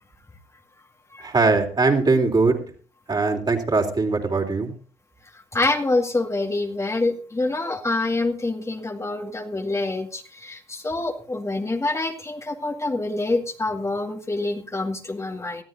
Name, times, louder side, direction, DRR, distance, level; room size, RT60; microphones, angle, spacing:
voice 1, 1.2-2.6 3.1-4.7, right 3 dB, 35° right, 2 dB, 3.6 m, -21 dB
voice 2, 5.5-15.6, left 2 dB, 25° left, 3 dB, 2.0 m, -26 dB
20.5 x 13.5 x 2.7 m, 0.40 s
hypercardioid pair, 50°, 13 cm